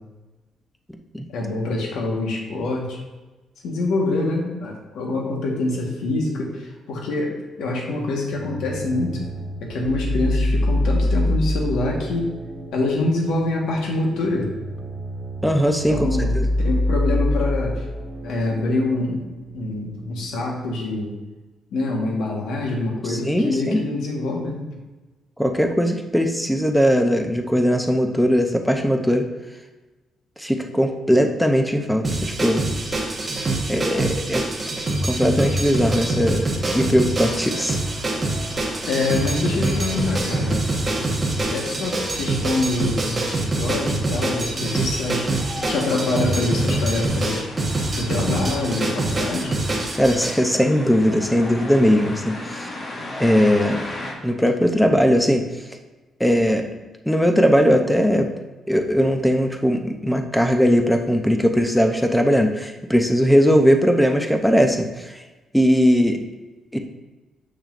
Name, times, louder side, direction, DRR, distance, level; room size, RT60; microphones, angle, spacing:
voice 1, 1.3-3.0 3.6-9.2 9.6-12.3 12.7-14.5 15.9-16.4 16.6-17.8 18.2-19.2 19.5-21.1 21.7-24.6 38.9-40.6 41.5-45.3 45.7-47.5 47.9-49.6, left 2 dB, 80° left, 0 dB, 1.4 m, -25 dB
sound 1, 8.3-20.3, left 1 dB, 70° right, 1.3 m, -26 dB
voice 2, 15.4-16.5 23.1-23.8 25.4-29.3 30.4-32.6 33.7-34.5 35.0-37.8 49.9-52.7 53.2-53.8 54.2-55.5 56.2-56.6 57.1-58.3 58.7-65.1 65.5-66.2 66.7-66.8, equal, ahead, 5 dB, 0.5 m, -19 dB
sound 2, 32.0-50.4, right 2 dB, 20° right, 1.1 m, -25 dB
sound 3, 37.2-54.1, left 2 dB, 30° left, 1.0 m, -38 dB
6.5 x 6.1 x 2.5 m, 1.2 s
cardioid pair, 135°, 0 cm